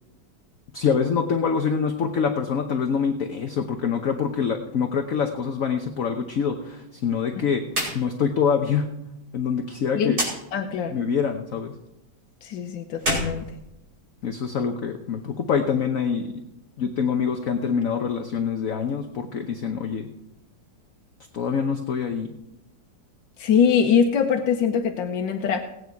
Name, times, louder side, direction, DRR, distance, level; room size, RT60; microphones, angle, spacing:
voice 1, 0.7-7.6 7.9-8.9 9.3-10.2 10.9-11.7 14.2-16.3 16.8-20.1 21.3-22.3, left 6 dB, 55° left, 5 dB, 1.2 m, -25 dB
sound 1, 7.7-8.0 8.3-8.4 10.1-10.4 12.9-14.2, right 1 dB, 50° right, 6.0 m, -27 dB
voice 2, 10.5-10.9 12.4-13.4 23.4-25.6, left 7 dB, 90° left, 4 dB, 1.7 m, -22 dB
18.5 x 9.4 x 4.7 m, 0.90 s
omnidirectional pair, 2.0 m